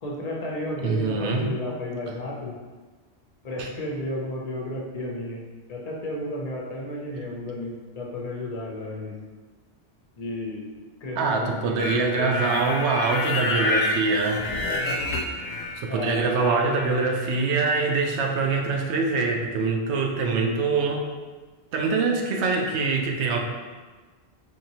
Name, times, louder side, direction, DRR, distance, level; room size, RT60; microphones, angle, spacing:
voice 1, 0.0-2.6 3.4-5.4 5.7-9.1 10.2-10.7 11.0-12.6 15.9-16.8 20.3-20.7, left 1 dB, 40° left, -2 dB, 0.7 m, -33 dB
voice 2, 0.8-1.6 3.6-3.7 11.2-14.4 15.8-21.1 21.7-23.4, right 4 dB, 80° right, 2 dB, 0.9 m, -24 dB
sound 1, 11.8-15.9 16.2-17.3, left 2 dB, 75° left, 0.9 m, -28 dB
4.5 x 2.9 x 2.8 m, 1.3 s
omnidirectional pair, 1.1 m